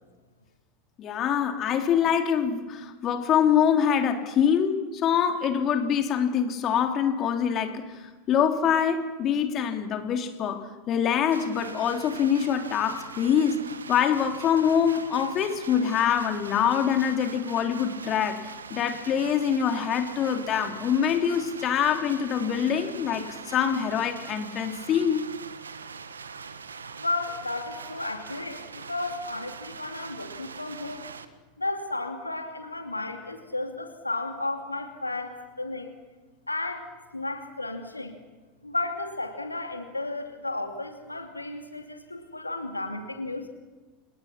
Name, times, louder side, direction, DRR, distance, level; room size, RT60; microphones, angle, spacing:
voice 1, 1.0-7.9 8.3-10.6 10.9-25.3, left 8 dB, 40° left, 5 dB, 3.4 m, -25 dB
sound 1, 11.3-31.3, right 5 dB, 80° right, 1.7 m, -42 dB
voice 2, 27.0-31.1 31.6-35.9 36.5-36.9 37.1-38.2 38.6-43.5, left 2 dB, 90° left, 4 dB, 2.7 m, -33 dB
30.0 x 27.5 x 6.0 m, 1.3 s
figure-of-eight pair, 80°, 0 cm